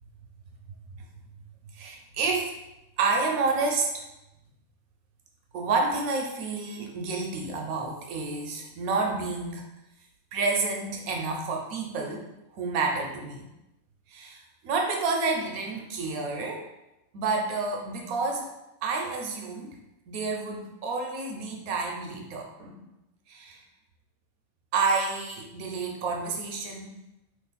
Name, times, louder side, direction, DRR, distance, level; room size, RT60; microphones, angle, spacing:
voice 1, 1.7-2.5 3.0-4.0 5.5-9.6 10.3-12.3 12.5-13.4 14.1-16.7 17.1-18.5 18.8-19.8 20.1-22.8 23.3-23.6 24.7-26.9, right 4 dB, 70° right, 1 dB, 0.9 m, -29 dB
3.0 x 2.4 x 4.0 m, 0.93 s
omnidirectional pair, 1.8 m